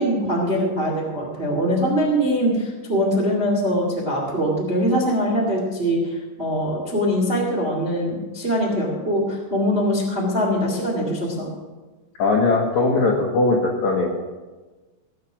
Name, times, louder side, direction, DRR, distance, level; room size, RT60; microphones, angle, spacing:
voice 1, 0.0-11.5, equal, 30° right, -2 dB, 1.1 m, -22 dB
voice 2, 12.2-14.1, left 3 dB, 65° left, -2 dB, 1.8 m, -19 dB
17.5 x 6.6 x 6.1 m, 1.3 s
omnidirectional pair, 5.3 m